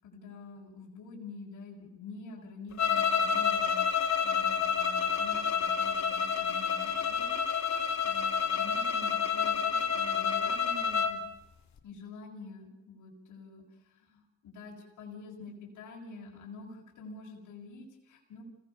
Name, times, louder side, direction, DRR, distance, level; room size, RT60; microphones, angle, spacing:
voice 1, 0.0-3.9 4.2-11.2 11.8-18.4, left 3 dB, 80° left, -2 dB, 6.9 m, -47 dB
sound 1, 2.8-11.2, left 6 dB, 65° left, 2.5 m, -29 dB
29.5 x 19.0 x 7.1 m, 0.92 s
cardioid pair, 90°, 30 cm